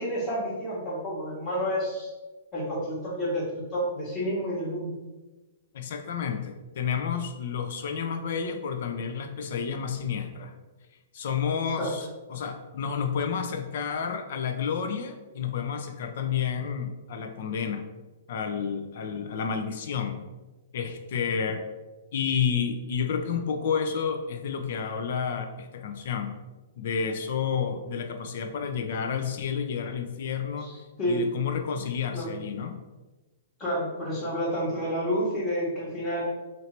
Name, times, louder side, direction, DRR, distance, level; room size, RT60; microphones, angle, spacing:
voice 1, 0.0-2.1 2.5-4.9 11.8-11.9 30.6-31.2 31.8-31.9 32.1-32.3 33.6-36.2, equal, 25° left, -9 dB, 1.2 m, -30 dB
voice 2, 5.7-10.5 11.1-17.8 18.3-20.2 20.7-21.6 22.1-26.3 26.8-30.7 31.1-32.8, left 7 dB, 60° left, 6 dB, 0.5 m, -30 dB
3.2 x 2.7 x 4.3 m, 1.2 s
hypercardioid pair, 150°, 0 cm